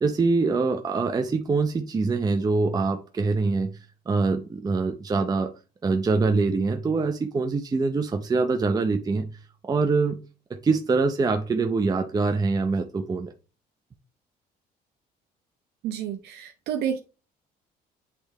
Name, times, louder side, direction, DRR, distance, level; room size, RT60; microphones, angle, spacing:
voice 1, 0.0-3.7 4.1-5.5 5.8-9.3 9.6-10.2 10.6-13.3, right 4 dB, 20° right, 5 dB, 0.6 m, -24 dB
voice 2, 15.8-17.0, right 9 dB, 75° right, 4 dB, 0.7 m, -30 dB
8.4 x 3.3 x 3.4 m, 0.33 s
cardioid pair, 110°, 17 cm